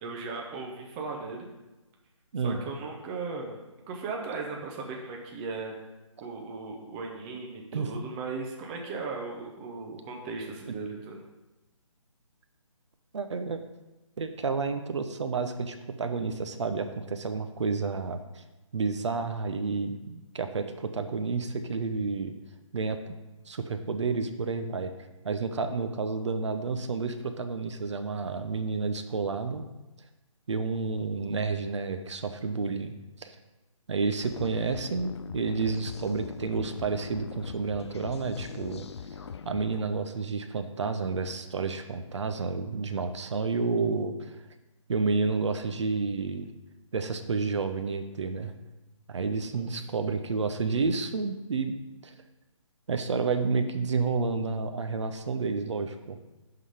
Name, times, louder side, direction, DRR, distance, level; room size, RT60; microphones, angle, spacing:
voice 1, 0.0-1.5 2.4-3.6 3.9-5.7 6.2-11.2 49.5-49.7, right 4 dB, 15° right, 0 dB, 0.6 m, -37 dB
voice 2, 13.1-13.6 14.2-18.4 18.7-22.3 22.7-23.0 23.5-24.9 25.2-29.7 30.5-33.4 33.9-38.9 39.4-44.3 44.9-46.5 46.9-48.5 49.1-51.8 52.0-52.1 52.9-56.2, right 4 dB, 60° right, 8 dB, 0.8 m, -30 dB
sound 1, 34.2-39.8, left 6 dB, 55° left, 0.4 m, -41 dB
11.0 x 3.9 x 5.0 m, 1.1 s
hypercardioid pair, 155°, 17 cm